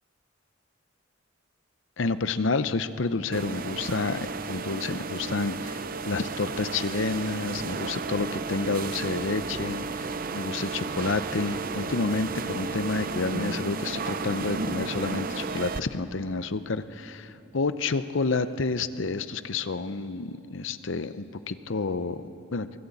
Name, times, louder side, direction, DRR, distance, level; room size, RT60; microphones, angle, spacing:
voice 1, 2.0-22.7, left 3 dB, 70° left, 12 dB, 0.7 m, -29 dB
sound 1, 3.3-15.8, right 4 dB, 45° right, 0.6 m, -33 dB
23.5 x 15.5 x 8.4 m, 2.9 s
head